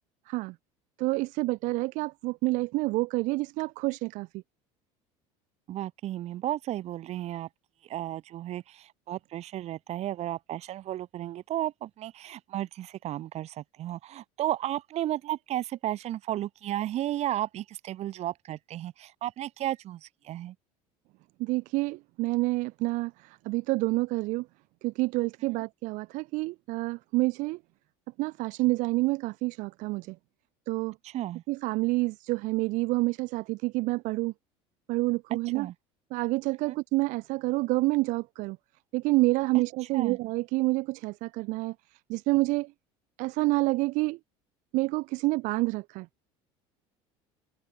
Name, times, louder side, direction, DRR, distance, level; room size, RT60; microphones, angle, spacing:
voice 1, 1.0-4.4 21.4-24.5 24.8-27.6 28.2-30.2 30.7-31.0 31.5-34.3 34.9-35.7 36.1-38.6 38.9-41.7 42.1-42.7 43.2-44.2 44.7-46.1, right 22 dB, 65° right, 2.2 m, -28 dB
voice 2, 5.7-7.5 7.8-20.5 31.0-31.4 35.5-35.7 36.7-36.8 39.9-40.2, right 13 dB, 50° right, 6.2 m, -33 dB
supercardioid pair, 115°, 14 cm